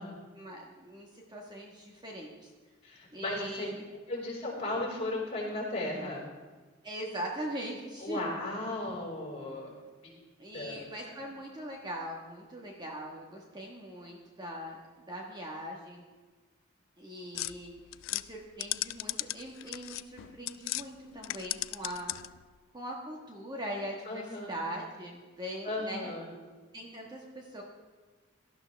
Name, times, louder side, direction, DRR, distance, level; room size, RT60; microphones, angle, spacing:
voice 1, 0.4-2.5 3.1-3.8 6.8-8.2 10.4-14.8 15.1-16.0 17.0-17.7 18.1-22.1 22.7-26.1 26.7-27.6, right 1 dB, 20° right, -1 dB, 1.5 m, -41 dB
voice 2, 2.8-3.7 4.1-6.2 8.0-9.7 10.0-10.1 10.5-10.8 24.0-24.5 25.6-26.3, left 2 dB, 35° left, -4 dB, 5.2 m, -35 dB
sound 1, 17.3-20.9 21.2-22.4, left 17 dB, 80° left, 0.3 m, -37 dB
18.0 x 12.5 x 3.5 m, 1.3 s
head